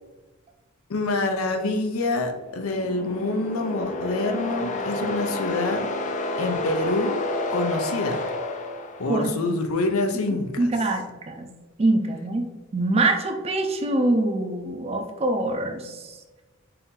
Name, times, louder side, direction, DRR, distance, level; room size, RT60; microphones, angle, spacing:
voice 1, 0.9-5.9 6.4-7.1 7.5-8.3 9.0-10.7, left 2 dB, 80° left, 5 dB, 0.6 m, -26 dB
sound 1, 2.4-9.5, left 2 dB, 35° left, 0.4 m, -30 dB
voice 2, 9.1-9.6 10.3-11.5 11.8-12.5 12.7-16.2, right 2 dB, 30° right, 5 dB, 0.5 m, -24 dB
4.4 x 2.7 x 3.7 m, 1.2 s
head